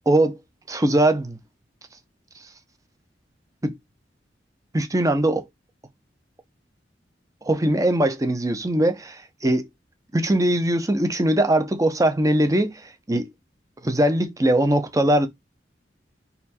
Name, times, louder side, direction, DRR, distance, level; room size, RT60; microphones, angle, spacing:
voice 1, 0.1-0.4 0.7-1.4 3.6-3.8 4.7-5.5 7.4-9.7 10.1-12.7 13.1-13.3 13.8-15.3, right 1 dB, 20° right, 0.7 m, -21 dB
4.2 x 2.7 x 4.2 m
head